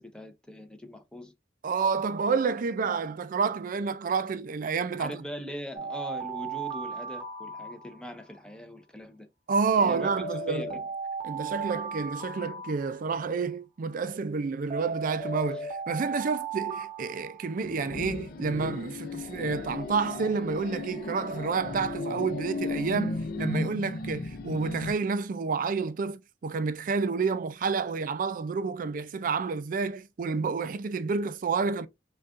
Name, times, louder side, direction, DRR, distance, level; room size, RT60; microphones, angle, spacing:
voice 1, 0.0-1.3 5.0-9.3 9.8-10.1 10.4-10.8, equal, 5° left, 0.6 m, -41 dB
voice 2, 1.6-5.2 9.5-10.8 11.2-31.9, right 5 dB, 50° right, 0.4 m, -29 dB
Alarm, 5.7-8.4 9.7-13.4 14.7-17.9, right 4 dB, 30° right, 0.8 m, -36 dB
sound 1, 17.6-24.9, left 2 dB, 55° left, 0.5 m, -35 dB
5.2 x 2.3 x 2.5 m
head